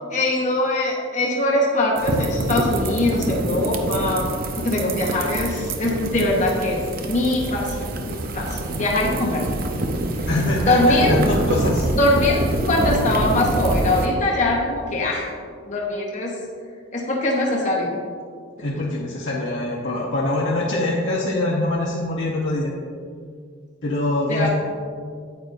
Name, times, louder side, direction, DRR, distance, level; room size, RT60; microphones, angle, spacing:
voice 1, 0.1-4.3 4.6-9.5 10.2-10.3 10.7-11.1 11.9-12.4 12.7-15.3 15.7-16.3 16.9-18.0 24.3-24.5, left 1 dB, 35° left, -2 dB, 0.9 m, -22 dB
sound 1, 2.0-14.1, right 1 dB, 45° right, 0.6 m, -25 dB
voice 2, 10.3-11.9 18.6-22.7 23.8-24.5, left 2 dB, 60° left, -4 dB, 0.9 m, -24 dB
9.2 x 8.7 x 2.6 m, 2.1 s
head